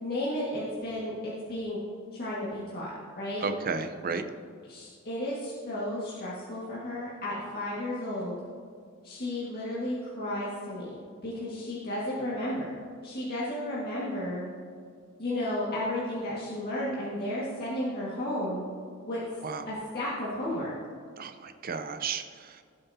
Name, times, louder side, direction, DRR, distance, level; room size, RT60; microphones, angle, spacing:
voice 1, 0.0-1.8 2.1-3.5 4.6-8.4 9.0-12.7 13.0-14.4 15.2-18.7 19.1-19.2 19.7-20.7, left 1 dB, 50° left, -7 dB, 1.8 m, -33 dB
voice 2, 3.4-4.2 19.4-19.7 21.2-22.6, right 5 dB, 45° right, 8 dB, 0.7 m, -33 dB
17.0 x 7.6 x 2.8 m, 2.2 s
head